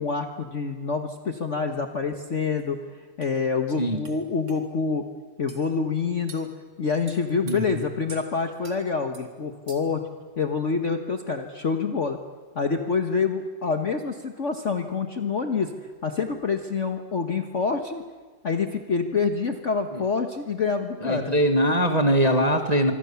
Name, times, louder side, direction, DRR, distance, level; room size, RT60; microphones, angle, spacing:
voice 1, 0.0-5.0 5.4-6.5 6.8-10.0 10.4-12.2 12.5-15.7 16.0-18.0 18.4-21.3, left 5 dB, 40° left, 6 dB, 1.5 m, -27 dB
sound 1, 2.6-2.7 3.2-3.3 4.0-4.2 4.5-4.6 5.5-5.6 6.3-6.5 7.1-7.6 8.1-8.3 8.6-8.8 9.1-9.3 9.7-10.0, right 3 dB, 40° right, 3.0 m, -45 dB
voice 2, 7.4-7.8 19.9-20.0 21.0-22.9, equal, 20° right, 6 dB, 1.6 m, -22 dB
25.5 x 25.0 x 7.1 m, 1.4 s
omnidirectional pair, 2.1 m